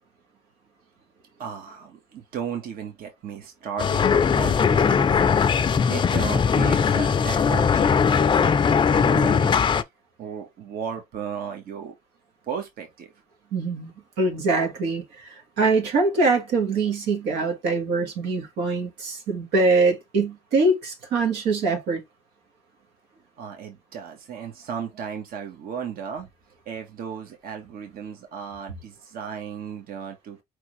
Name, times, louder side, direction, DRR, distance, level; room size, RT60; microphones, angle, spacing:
voice 1, 1.4-5.3 5.9-9.7 10.2-11.9 12.5-13.1 23.4-26.3 26.6-30.4, right 7 dB, 60° right, 1.3 m, -35 dB
sound 1, 3.8-9.8, left 6 dB, 30° left, 0.5 m, -20 dB
voice 2, 13.5-13.9 14.2-22.0, right 3 dB, 85° right, 1.7 m, -23 dB
4.8 x 3.5 x 3.2 m
cardioid pair, 110°, 17 cm